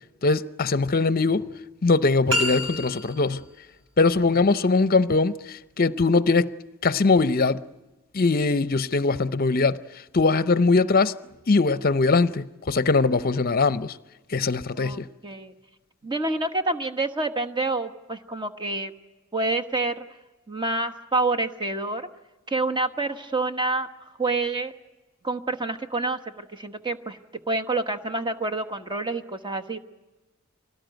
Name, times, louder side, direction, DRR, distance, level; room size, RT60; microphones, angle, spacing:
voice 1, 0.2-1.5 1.8-3.4 4.0-6.5 6.8-7.6 8.1-9.8 10.1-11.2 11.5-14.0 14.3-15.1, left 3 dB, 45° left, 0.7 m, -21 dB
sound 1, 2.3-3.4, equal, 70° right, 3.6 m, -27 dB
voice 2, 14.7-15.5 16.0-18.9 19.3-20.0 20.5-22.1 22.5-23.9 24.2-24.7 25.2-27.2 27.5-29.8, right 2 dB, 20° right, 1.2 m, -27 dB
24.5 x 18.5 x 9.1 m
head